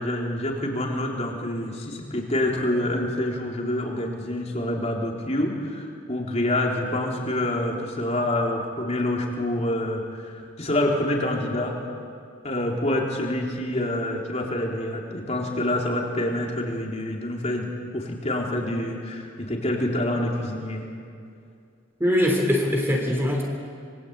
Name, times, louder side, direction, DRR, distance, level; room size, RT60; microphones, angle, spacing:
voice 1, 0.0-11.8 12.4-20.9, left 1 dB, 35° left, -1 dB, 4.1 m, -27 dB
voice 2, 22.0-23.4, left 1 dB, 10° right, 1 dB, 3.3 m, -22 dB
26.5 x 24.0 x 8.5 m, 2.4 s
head